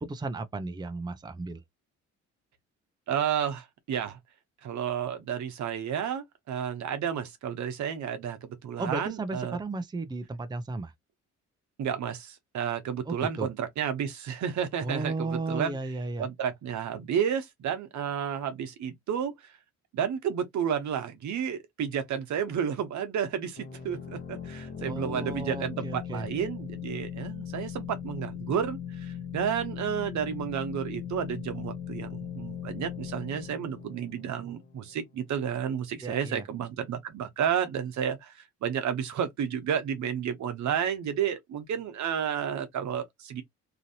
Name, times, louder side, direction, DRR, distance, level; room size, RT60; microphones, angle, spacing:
voice 1, 0.0-1.6 8.8-10.9 13.0-13.5 14.8-16.3 24.8-26.3 36.0-36.4, right 3 dB, 15° right, 0.6 m, -34 dB
voice 2, 3.1-4.2 4.6-9.6 11.8-15.8 16.2-19.5 19.9-43.4, right 8 dB, 70° right, 1.0 m, -31 dB
sound 1, 23.6-35.1, left 8 dB, 35° left, 1.0 m, -39 dB
3.0 x 2.6 x 2.8 m
cardioid pair, 90°, 30 cm